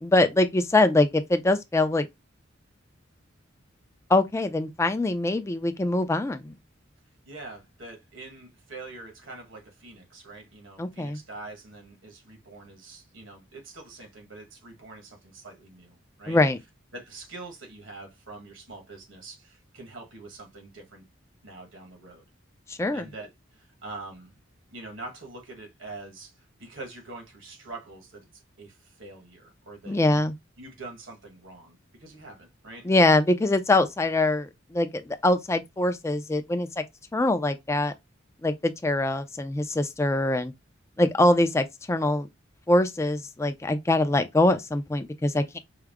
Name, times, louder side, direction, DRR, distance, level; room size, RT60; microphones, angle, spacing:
voice 1, 0.0-2.1 4.1-6.5 10.8-11.2 16.3-16.6 22.7-23.1 29.9-30.3 32.8-36.8 37.1-37.9 38.4-40.5 41.0-42.3 42.7-45.4, left 2 dB, 15° left, 0.4 m, -23 dB
voice 2, 7.2-16.4 16.9-21.0 21.4-22.2 22.9-24.4 24.7-30.2 30.6-32.9 41.0-41.3, right 2 dB, 70° right, 1.4 m, -44 dB
4.6 x 2.0 x 3.5 m
head